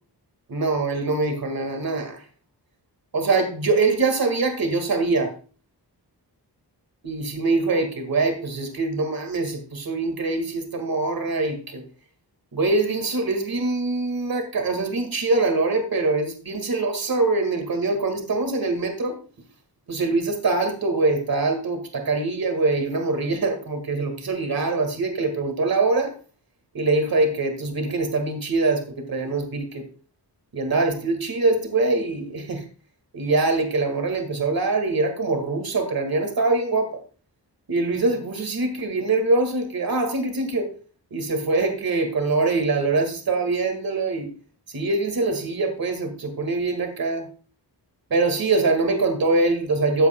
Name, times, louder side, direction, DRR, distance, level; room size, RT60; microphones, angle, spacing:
voice 1, 0.5-2.2 3.1-5.3 7.0-11.8 12.5-19.2 19.9-26.1 26.7-29.9 30.5-32.6 33.1-37.0 37.7-40.7 41.1-44.3 44.7-47.3 48.1-50.1, right 3 dB, 60° right, 1.9 m, -23 dB
13.5 x 8.1 x 2.2 m
wide cardioid pair, 100°, 40 cm